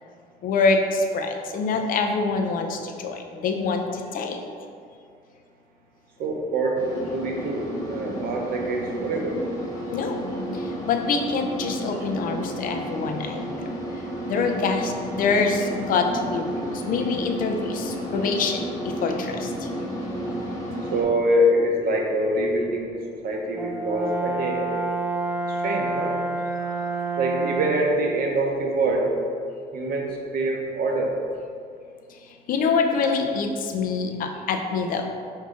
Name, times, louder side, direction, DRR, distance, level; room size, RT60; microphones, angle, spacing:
voice 1, 0.4-4.4 9.9-10.2 10.5-13.7 14.3-19.7 32.1-32.2 32.5-35.1, left 4 dB, 55° left, 4 dB, 0.5 m, -25 dB
voice 2, 6.2-9.4 20.9-24.7 25.5-26.2 27.2-29.1 29.7-31.2 33.1-33.2, right 1 dB, 60° right, 1 dB, 0.7 m, -25 dB
sound 1, 6.8-21.0, equal, 20° left, 1.0 m, -32 dB
Brass instrument, 23.6-28.0, right 3 dB, 10° right, 0.3 m, -28 dB
4.8 x 2.7 x 3.7 m, 2.3 s
cardioid pair, 110°, 17 cm